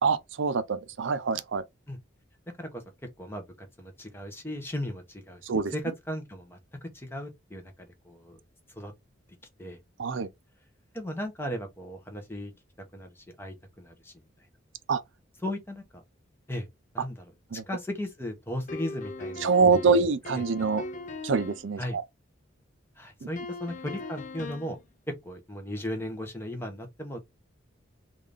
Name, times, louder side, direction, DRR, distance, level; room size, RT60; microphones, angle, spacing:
voice 1, 0.0-1.6 5.4-5.7 10.0-10.3 14.9-15.0 17.5-17.6 19.4-20.8 21.2-22.0, right 4 dB, 70° right, 0.5 m, -25 dB
voice 2, 3.2-8.4 8.8-8.9 9.6-9.8 10.9-12.5 12.9-14.1 15.4-16.0 16.5-16.7 16.9-17.2 17.7-19.5 20.3-20.4 21.8-22.0 23.0-24.8 25.1-27.2, left 1 dB, 10° left, 0.8 m, -36 dB
sound 1, 18.7-21.7 23.4-24.8, left 3 dB, 40° left, 0.5 m, -39 dB
3.6 x 2.5 x 3.3 m
head